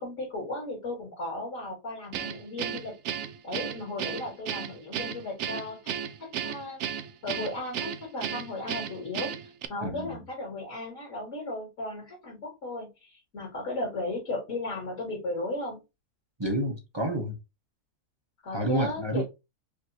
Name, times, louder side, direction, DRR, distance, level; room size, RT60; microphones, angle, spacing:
voice 1, 0.0-2.9 3.4-5.9 6.2-6.8 7.2-15.8 18.4-19.2, left 2 dB, 50° left, 2.8 m, -35 dB
Guitar, 2.1-9.7, right 9 dB, 70° right, 0.6 m, -34 dB
voice 2, 9.8-10.2 16.4-17.4 18.5-19.2, right 1 dB, 20° right, 0.9 m, -29 dB
5.1 x 2.9 x 2.8 m
omnidirectional pair, 1.7 m